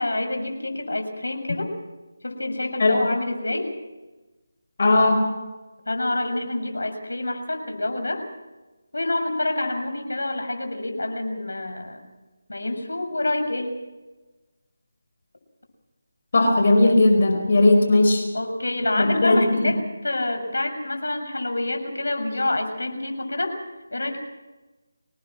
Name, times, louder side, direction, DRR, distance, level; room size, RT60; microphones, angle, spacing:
voice 1, 0.0-1.7 2.2-3.7 5.9-8.2 8.9-12.1 12.5-13.8 18.3-23.5 23.9-24.2, left 2 dB, 80° left, 5 dB, 6.6 m, -27 dB
voice 2, 4.8-5.2 16.3-18.2 19.0-19.6, left 2 dB, 50° left, 5 dB, 4.7 m, -17 dB
26.0 x 19.5 x 6.2 m, 1.1 s
figure-of-eight pair, 160°, 0 cm